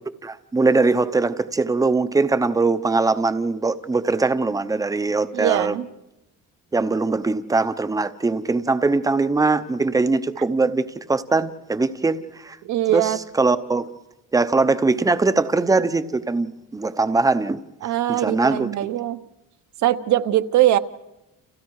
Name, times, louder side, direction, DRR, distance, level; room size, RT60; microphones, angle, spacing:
voice 1, 0.2-5.8 6.7-12.6 12.9-13.9 14.3-17.6 18.1-18.7, right 3 dB, 10° right, 0.8 m, -21 dB
voice 2, 5.3-5.9 12.6-13.2 17.8-19.2 19.8-20.8, right 13 dB, 60° right, 1.1 m, -21 dB
30.0 x 29.5 x 4.8 m
cardioid pair, 175°, 32 cm